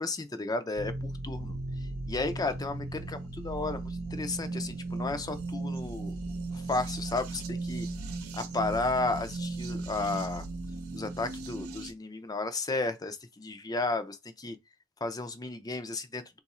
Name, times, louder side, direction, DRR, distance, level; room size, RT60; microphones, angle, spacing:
voice 1, 0.0-6.2 6.5-7.9 8.3-10.4 10.9-14.6 15.0-16.2, left 3 dB, 20° left, 0.4 m, -33 dB
sound 1, 0.8-11.9, right 2 dB, 85° right, 0.8 m, -37 dB
3.7 x 2.4 x 4.1 m
head